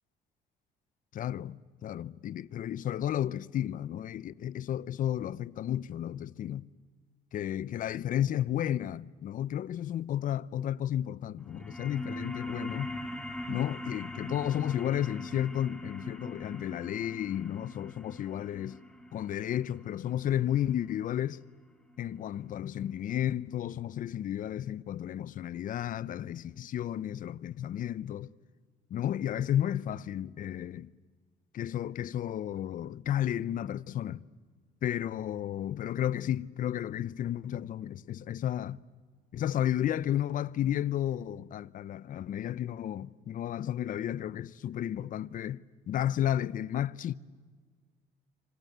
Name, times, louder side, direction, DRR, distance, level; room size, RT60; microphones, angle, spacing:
voice 1, 1.1-6.7 7.3-12.9 13.5-18.8 19.1-21.4 22.0-28.3 28.9-30.9 31.5-34.2 34.8-38.8 39.3-47.1, left 11 dB, 55° left, 0.7 m, -32 dB
sound 1, 11.4-22.5, left 1 dB, 5° left, 2.6 m, -42 dB
26.5 x 25.5 x 8.1 m
cardioid pair, 110°, 17 cm